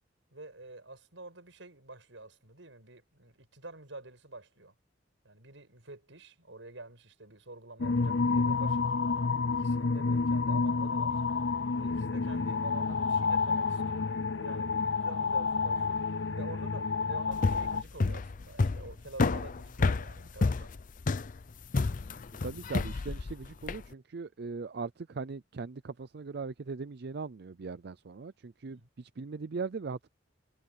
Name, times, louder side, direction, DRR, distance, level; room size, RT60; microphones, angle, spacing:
voice 1, 0.3-4.7 5.2-9.1 9.5-11.2 11.8-16.0 16.4-20.7 28.7-28.9, right 2 dB, 85° right, 6.1 m, -48 dB
sound 1, 7.8-17.8, left 4 dB, 75° left, 0.7 m, -29 dB
sound 2, 17.3-23.9, left 3 dB, 45° left, 0.5 m, -30 dB
voice 2, 22.4-30.1, right 4 dB, 60° right, 0.5 m, -39 dB
head